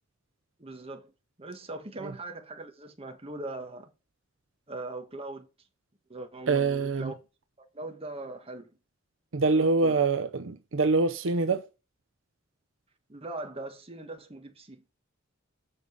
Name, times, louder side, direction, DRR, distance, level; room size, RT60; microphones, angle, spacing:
voice 1, 0.6-1.1 1.4-3.9 4.7-5.5 6.1-7.1 7.7-8.7 9.4-10.1 13.1-14.8, right 2 dB, 30° right, 1.6 m, -40 dB
voice 2, 6.5-7.1 9.3-11.6, right 3 dB, 70° right, 0.7 m, -25 dB
7.1 x 5.3 x 6.6 m
head